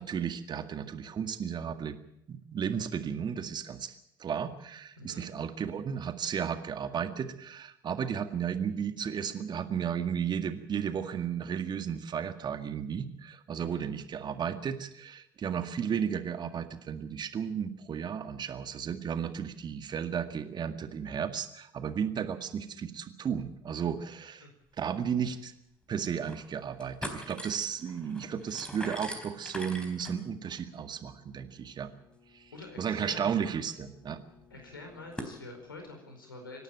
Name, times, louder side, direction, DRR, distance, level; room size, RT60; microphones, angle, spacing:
voice 1, 0.0-2.0 2.3-24.5 24.8-25.5 25.9-31.9 32.3-32.5 32.8-34.2, right 7 dB, 40° right, 9 dB, 1.9 m, -34 dB
sound 1, 25.0-25.1 25.4-25.5 26.0-26.4 26.7-35.4, equal, 10° left, 4.0 m, -45 dB
voice 2, 32.5-33.4 34.5-36.6, left 2 dB, 85° left, 3 dB, 4.9 m, -46 dB
26.0 x 12.0 x 9.0 m, 0.79 s
figure-of-eight pair, 60°, 11 cm